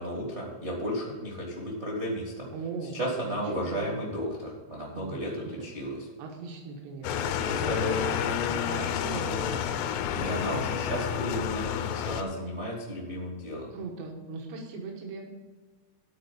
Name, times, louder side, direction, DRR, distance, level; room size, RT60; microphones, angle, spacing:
voice 1, 0.0-2.5 2.9-5.3 5.6-6.0 7.4-8.0 10.1-13.7, equal, 60° right, -3 dB, 0.7 m, -33 dB
voice 2, 2.5-3.0 3.3-4.0 5.0-5.6 6.2-10.3 13.7-15.3, right 4 dB, 85° right, 1 dB, 3.4 m, -40 dB
sound 1, 7.0-12.2, left 9 dB, 80° left, 2.7 m, -30 dB
11.5 x 4.5 x 8.2 m, 1.3 s
omnidirectional pair, 4.9 m